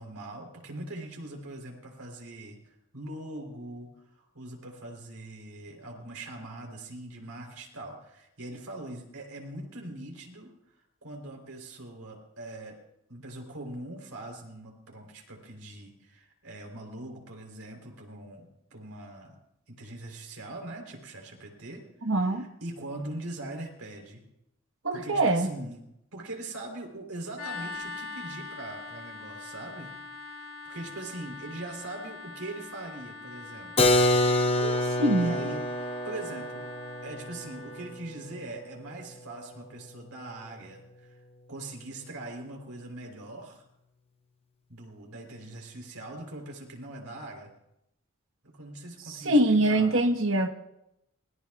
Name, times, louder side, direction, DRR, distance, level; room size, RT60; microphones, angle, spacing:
voice 1, 0.0-10.5 11.0-12.8 13.1-19.4 19.7-21.8 22.2-24.2 24.9-25.8 26.1-29.9 30.3-33.8 35.2-35.6 36.0-36.7 37.0-41.2 41.5-43.7 44.7-47.5 48.4-49.9, right 2 dB, 90° right, 1 dB, 3.7 m, -42 dB
voice 2, 22.0-22.5 24.8-25.5 34.6-35.4 49.2-50.5, right 1 dB, 60° right, 5 dB, 1.3 m, -24 dB
sound 1, 27.3-38.0, left 3 dB, 70° left, 2.7 m, -43 dB
Keyboard (musical), 33.8-39.4, left 1 dB, 25° left, 0.8 m, -27 dB
25.0 x 18.5 x 2.4 m, 0.83 s
head